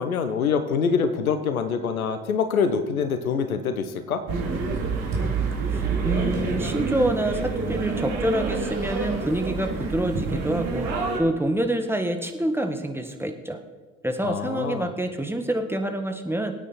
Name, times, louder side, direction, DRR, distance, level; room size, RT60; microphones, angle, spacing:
voice 1, 0.0-4.2 14.2-14.9, left 6 dB, 80° left, 10 dB, 1.1 m, -25 dB
sound 1, 4.3-11.2, right 4 dB, 55° right, 3.5 m, -27 dB
voice 2, 5.7-10.9 11.2-13.6 14.0-16.5, right 1 dB, 5° right, 5 dB, 1.7 m, -27 dB
23.0 x 9.2 x 4.4 m, 1.3 s
figure-of-eight pair, 55°, 42 cm